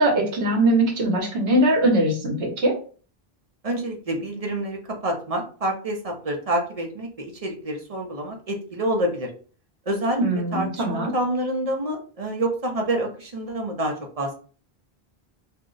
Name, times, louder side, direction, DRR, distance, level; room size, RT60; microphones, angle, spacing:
voice 1, 0.0-2.7 10.2-11.1, right 1 dB, 75° right, 0 dB, 1.1 m, -21 dB
voice 2, 3.6-9.3 9.9-10.2 10.5-14.3, right 1 dB, 45° right, 2 dB, 0.6 m, -27 dB
2.6 x 2.1 x 3.7 m, 0.40 s
omnidirectional pair, 1.1 m